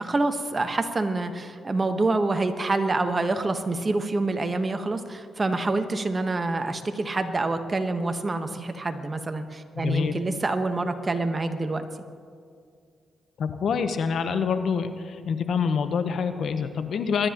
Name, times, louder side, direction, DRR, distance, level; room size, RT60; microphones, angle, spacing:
voice 1, 0.0-11.9, right 2 dB, 35° right, 7 dB, 1.2 m, -27 dB
voice 2, 9.8-10.1 13.4-17.3, left 6 dB, 70° left, 9 dB, 0.9 m, -26 dB
22.0 x 12.5 x 3.0 m, 2.2 s
cardioid pair, 70°, 0 cm